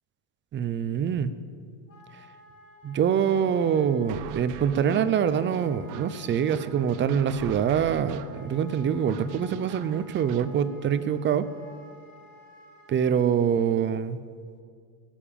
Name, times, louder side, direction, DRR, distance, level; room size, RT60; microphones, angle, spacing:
voice 1, 0.5-1.3 2.8-11.5 12.9-14.2, right 8 dB, 25° right, 13 dB, 0.5 m, -25 dB
Wind instrument woodwind instrument, 1.9-13.2, left 1 dB, 25° left, 2.3 m, -52 dB
Drum, 3.3-9.4, left 3 dB, 85° left, 4.5 m, -47 dB
sound 1, 4.1-10.5, right 12 dB, 75° right, 0.9 m, -43 dB
17.5 x 7.2 x 8.7 m, 2.1 s
supercardioid pair, 130°, 50 cm